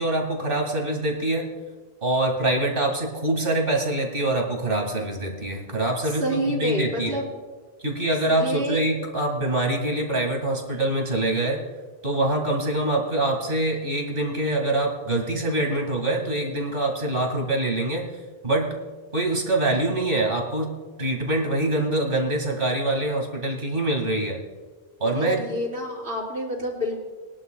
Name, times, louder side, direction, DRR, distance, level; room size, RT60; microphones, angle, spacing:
voice 1, 0.0-1.5 2.0-7.2 7.8-11.6 12.0-18.1 18.4-18.7 19.1-20.7 21.0-24.4 25.0-25.4, right 1 dB, 55° right, 1 dB, 2.2 m, -24 dB
voice 2, 6.0-7.3 8.3-8.8 25.0-27.0, equal, 80° right, -7 dB, 3.9 m, -28 dB
22.0 x 11.0 x 2.3 m, 1.4 s
omnidirectional pair, 1.1 m